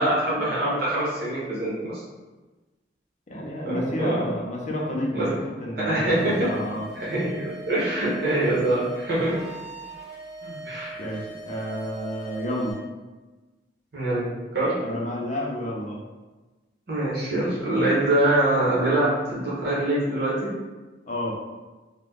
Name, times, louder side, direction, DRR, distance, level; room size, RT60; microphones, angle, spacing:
voice 1, 0.0-2.0 3.6-4.4 5.1-5.4 5.8-6.5 6.9-9.4 10.6-11.0 13.9-14.7 16.9-20.5, right 1 dB, 60° right, -7 dB, 1.1 m, -24 dB
voice 2, 3.3-5.3 5.6-6.8 10.4-10.6 11.0-12.8 14.8-16.0 21.1-21.3, equal, 40° left, -3 dB, 0.6 m, -30 dB
sound 1, 6.1-12.7, right 2 dB, ahead, 1.1 m, -41 dB
2.9 x 2.2 x 3.6 m, 1.2 s
head